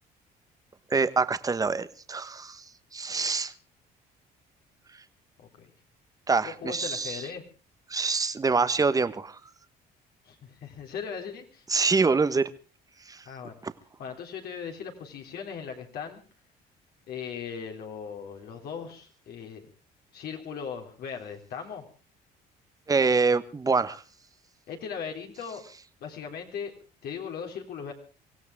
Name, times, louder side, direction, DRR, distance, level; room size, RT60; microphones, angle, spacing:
voice 1, 0.9-2.6 2.9-3.5 6.3-7.2 7.9-9.4 11.7-12.5 13.1-13.2 13.6-13.7 22.9-24.0, right 4 dB, 20° right, 13 dB, 1.2 m, -25 dB
voice 2, 5.4-5.7 6.4-7.4 10.3-11.6 13.3-13.6 14.0-16.2 17.1-19.6 20.1-21.8 24.7-25.6 26.0-26.7 27.0-27.9, left 7 dB, 65° left, 2 dB, 3.8 m, -38 dB
24.5 x 16.5 x 3.6 m, 0.35 s
cardioid pair, 110°, 17 cm